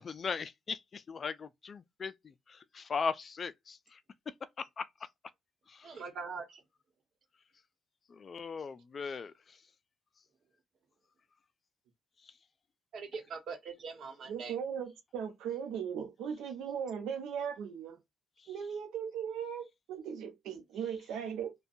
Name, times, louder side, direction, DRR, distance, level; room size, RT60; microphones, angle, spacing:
voice 1, 0.0-2.1 2.7-3.8 4.8-4.9 8.1-9.3, left 5 dB, 45° left, 0.3 m, -37 dB
voice 2, 5.8-6.6 12.9-14.5, right 5 dB, 60° right, 1.0 m, -42 dB
voice 3, 14.3-18.0 18.5-21.5, right 7 dB, 85° right, 0.7 m, -38 dB
2.6 x 2.2 x 2.4 m
cardioid pair, 90°, 0 cm